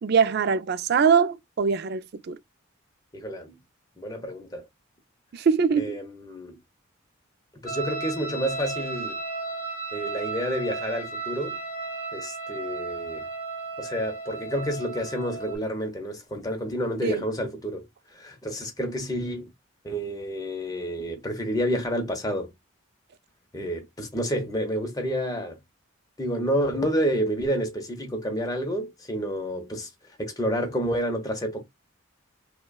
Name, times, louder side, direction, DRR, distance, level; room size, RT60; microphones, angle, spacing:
voice 1, 0.0-2.4 5.3-6.0 17.0-17.2, right 6 dB, 50° right, 0.3 m, -22 dB
voice 2, 3.1-3.6 4.0-4.7 5.8-6.6 7.6-9.2 9.9-11.6 12.1-13.3 13.8-17.9 18.1-19.5 19.8-22.5 23.5-25.6 26.2-29.9 30.2-31.6, equal, 20° left, 0.8 m, -29 dB
sound 1, 7.7-15.6, right 3 dB, 45° left, 1.1 m, -34 dB
5.2 x 2.2 x 2.3 m
head